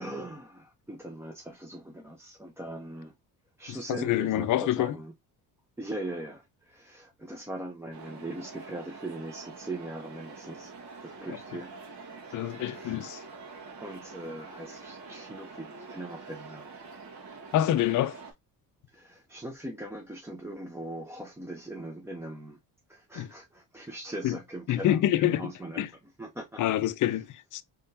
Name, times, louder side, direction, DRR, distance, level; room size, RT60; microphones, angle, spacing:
voice 1, 0.0-3.1 3.6-5.1 5.8-10.7 11.0-11.8 12.3-13.0 13.8-16.7 18.9-22.6 22.9-25.9 26.2-26.8 27.1-27.2, right 1 dB, 5° right, 0.6 m, -40 dB
voice 2, 3.7-4.9 12.3-13.2 17.5-18.2 23.2-23.3 24.2-24.4 24.7-25.5 25.8-25.9 26.6-27.6, left 12 dB, 50° left, 0.5 m, -26 dB
sound 1, 7.9-18.3, right 4 dB, 65° right, 1.8 m, -46 dB
3.5 x 3.4 x 2.6 m
cardioid pair, 90°, 38 cm